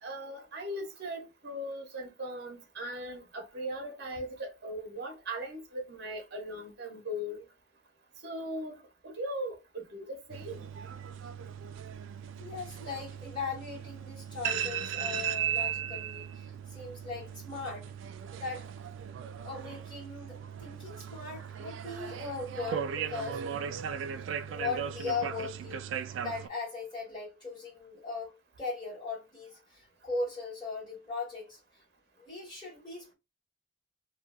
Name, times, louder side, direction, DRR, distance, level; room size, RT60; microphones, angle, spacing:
voice 1, 0.0-7.5 8.2-10.6, equal, 55° right, 0.8 m, -39 dB
sound 1, 10.3-26.5, right 8 dB, 75° right, 0.3 m, -37 dB
voice 2, 12.4-17.9 18.3-18.7 19.4-23.4 24.5-31.6 32.2-33.1, left 4 dB, 25° left, 1.6 m, -39 dB
2.6 x 2.6 x 2.4 m
head